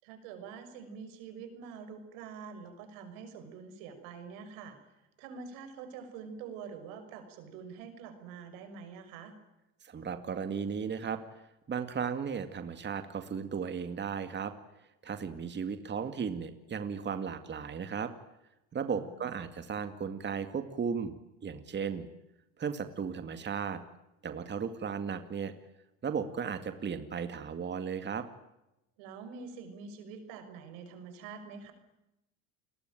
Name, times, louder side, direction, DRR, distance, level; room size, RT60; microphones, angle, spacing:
voice 1, 0.0-4.8 5.2-9.3 18.9-19.3 29.0-31.7, right 6 dB, 85° right, 9 dB, 6.1 m, -46 dB
voice 2, 9.8-14.5 14.8-18.1 18.7-21.1 21.4-22.1 22.6-23.8 24.2-25.5 26.0-28.3, right 6 dB, 30° right, 9 dB, 2.2 m, -35 dB
29.5 x 21.0 x 9.2 m, 0.92 s
supercardioid pair, 115°, 37 cm